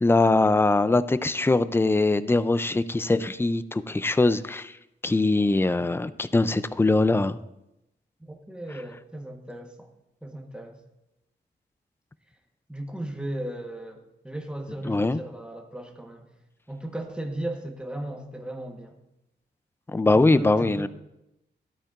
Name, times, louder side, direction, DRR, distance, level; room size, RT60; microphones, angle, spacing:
voice 1, 0.0-4.7 5.0-7.4 14.9-15.2 19.9-20.9, left 2 dB, 10° left, 14 dB, 0.4 m, -22 dB
voice 2, 8.2-9.9 10.2-10.8 12.7-16.3 16.7-19.0 20.1-20.9, right 1 dB, 5° right, 2 dB, 1.2 m, -36 dB
13.0 x 12.0 x 2.5 m, 0.89 s
wide cardioid pair, 90°, 18 cm